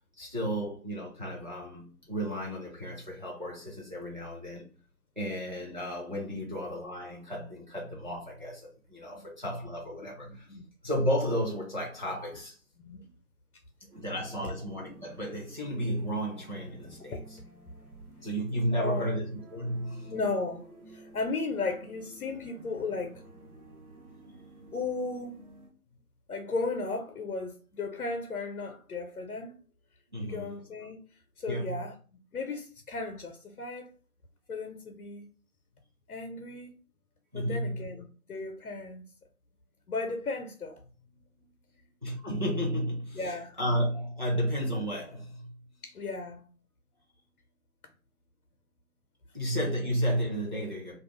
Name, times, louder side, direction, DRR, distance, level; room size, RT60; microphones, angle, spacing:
voice 1, 0.2-4.7 5.2-10.5 10.8-12.6 13.9-17.2 18.2-20.1 30.1-30.6 31.5-31.9 37.3-37.9 42.0-45.6 49.3-51.0, equal, 35° right, 0.6 m, -33 dB
voice 2, 10.0-10.6 12.8-13.0 14.0-14.2 18.1-18.2 18.7-19.2 20.1-23.2 24.7-25.4 26.3-29.5 30.2-31.0 31.4-31.9 32.3-33.9 34.5-35.3 36.1-36.7 37.3-39.0 39.9-40.8 43.1-43.6 45.8-46.4, left 3 dB, 85° left, 0.6 m, -35 dB
sound 1, 13.9-25.7, right 2 dB, 80° right, 1.1 m, -53 dB
2.4 x 2.1 x 3.0 m
figure-of-eight pair, 165°, 43 cm